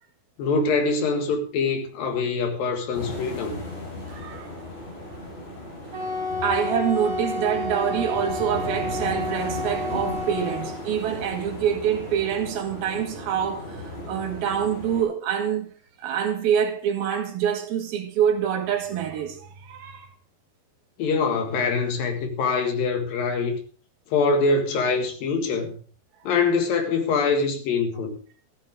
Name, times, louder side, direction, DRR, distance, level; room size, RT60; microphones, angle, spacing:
voice 1, 0.4-3.6 21.0-23.6 24.1-25.8 26.2-28.1, left 4 dB, 65° left, 3.4 m, -24 dB
sound 1, 2.9-15.0, left 1 dB, 50° left, 7.9 m, -36 dB
voice 2, 4.1-4.5 6.4-15.7 16.0-20.1, right 8 dB, 70° right, 3.4 m, -26 dB
Wind instrument woodwind instrument, 5.9-10.8, left 2 dB, 20° right, 3.3 m, -30 dB
15.0 x 12.5 x 3.6 m
omnidirectional pair, 4.6 m